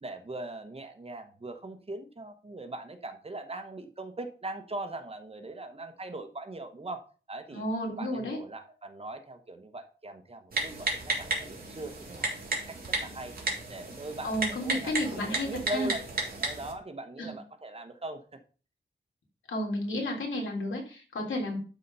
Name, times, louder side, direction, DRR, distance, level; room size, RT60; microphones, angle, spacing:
voice 1, 0.0-7.0 7.3-7.6 8.0-13.3 13.7-14.4 14.6-16.1 16.4-18.4, right 2 dB, 30° right, 7 dB, 1.1 m, -40 dB
voice 2, 7.5-8.4 14.2-15.9 17.2-17.4 19.5-21.6, left 1 dB, 80° left, 0 dB, 3.4 m, -32 dB
Typing, 10.5-16.7, right 2 dB, 45° right, 3.0 m, -33 dB
12.0 x 4.1 x 5.5 m, 0.37 s
wide cardioid pair, 150°, 20 cm